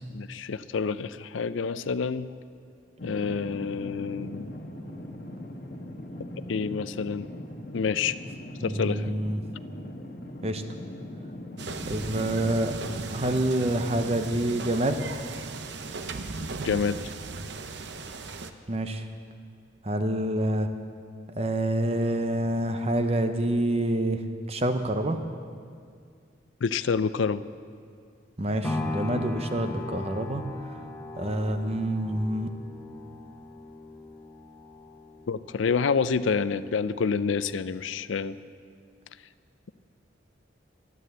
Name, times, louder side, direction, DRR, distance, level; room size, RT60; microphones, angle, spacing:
voice 1, 0.1-2.3 3.0-4.5 6.5-7.3 7.7-8.2 8.6-9.1 16.4-17.0 26.6-27.4 35.3-38.4, left 5 dB, 80° left, 15 dB, 0.4 m, -28 dB
sound 1, 3.0-13.0, left 1 dB, 50° left, 1.4 m, -40 dB
voice 2, 8.6-9.4 10.4-10.6 11.9-12.7 13.1-15.0 18.7-19.1 19.8-20.7 21.4-24.2 24.5-25.2 28.4-30.4 30.7-30.8 31.2-32.5, right 1 dB, 30° right, 8 dB, 0.8 m, -27 dB
sound 2, 11.6-18.5, right 3 dB, 65° right, 0.7 m, -37 dB
sound 3, 28.6-36.7 37.2-37.3, left 2 dB, 5° left, 1.0 m, -38 dB
12.5 x 11.0 x 8.0 m, 2.2 s
head